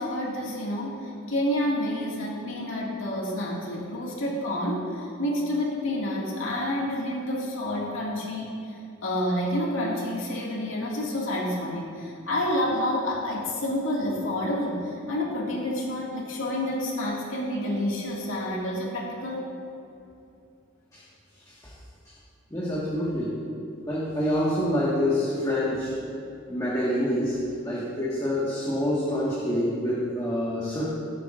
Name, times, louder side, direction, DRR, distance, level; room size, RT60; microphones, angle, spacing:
voice 1, 0.0-4.9 5.2-8.5 9.0-19.5, left 1 dB, 80° left, -4 dB, 2.1 m, -29 dB
voice 2, 22.5-23.3 23.9-25.9 26.5-27.4 27.6-30.8, left 1 dB, 15° left, -8 dB, 1.6 m, -26 dB
19.0 x 8.4 x 2.6 m, 2.7 s
head